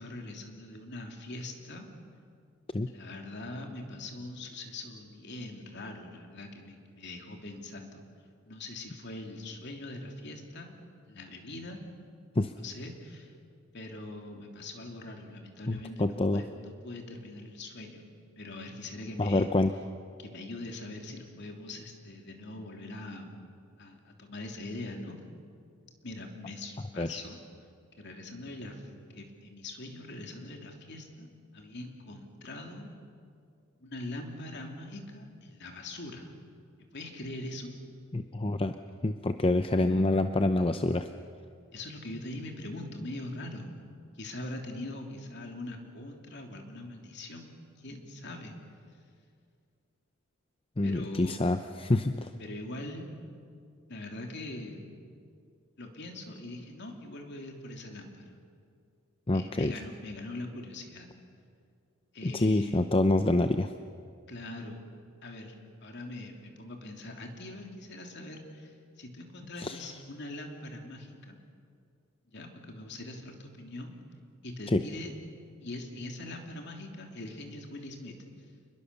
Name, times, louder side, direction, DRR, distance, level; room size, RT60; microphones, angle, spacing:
voice 1, 0.0-1.9 2.9-8.0 8.5-10.7 11.1-11.8 12.4-13.3 13.7-18.0 18.4-19.5 20.2-23.3 23.8-25.2 26.0-27.4 28.0-28.8 29.1-31.3 31.5-32.9 33.8-36.3 36.9-37.7 41.7-43.7 44.1-47.5 47.8-48.5 50.8-51.5 52.4-53.1 53.9-54.8 55.8-58.4 59.3-61.1 62.1-62.9 64.3-64.8 65.2-65.5 65.8-71.4 72.3-73.9 74.4-75.1 75.6-78.1, left 2 dB, 55° left, 3 dB, 3.2 m, -42 dB
voice 2, 15.7-16.4 19.2-19.7 27.0-27.2 38.1-38.7 39.0-41.0 50.8-52.3 59.3-59.7 62.2-63.7 69.6-69.8 74.7-74.8, left 2 dB, 25° left, 8 dB, 0.6 m, -26 dB
29.0 x 21.0 x 7.0 m, 2.3 s
head